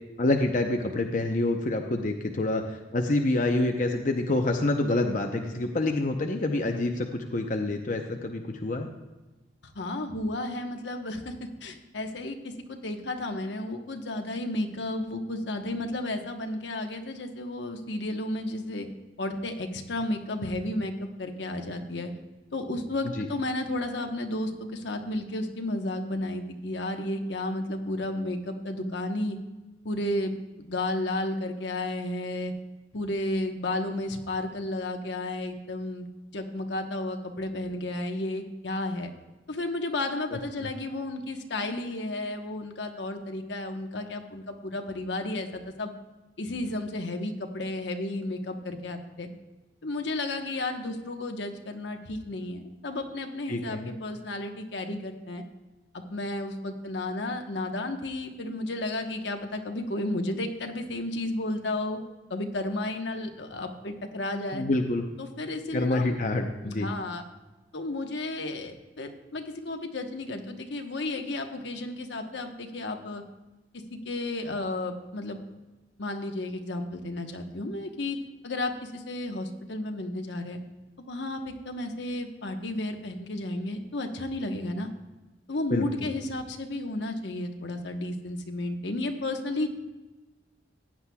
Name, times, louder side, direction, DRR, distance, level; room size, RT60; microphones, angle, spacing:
voice 1, 0.2-8.9 23.2-23.3 40.6-40.7 53.5-53.9 64.5-65.1 65.7-66.9 85.7-85.9, left 2 dB, 45° left, 3 dB, 0.7 m, -27 dB
voice 2, 9.7-18.9 19.2-22.1 22.5-29.4 29.8-32.5 32.9-36.1 36.3-39.1 39.5-45.9 46.4-49.3 49.8-55.4 55.9-62.0 62.3-64.6 65.2-66.2 66.6-67.2 67.7-73.2 73.7-75.4 76.0-78.2 78.4-80.6 81.0-84.9 85.5-89.7, left 2 dB, 80° left, 4 dB, 1.1 m, -33 dB
15.5 x 10.0 x 2.3 m, 1.1 s
head